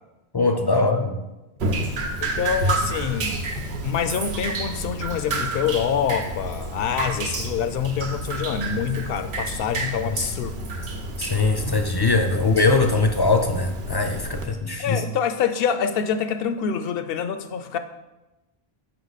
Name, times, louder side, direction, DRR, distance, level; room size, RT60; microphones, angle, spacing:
voice 1, 0.3-1.2 11.2-15.0, left 3 dB, 30° left, 6 dB, 0.5 m, -21 dB
Drip, 1.6-14.4, right 2 dB, 85° right, 1.1 m, -29 dB
voice 2, 2.2-3.3 3.8-10.5 12.3-12.4 14.8-17.8, left 7 dB, 70° left, 10 dB, 0.8 m, -26 dB
6.9 x 5.3 x 4.0 m, 1.0 s
omnidirectional pair, 1.0 m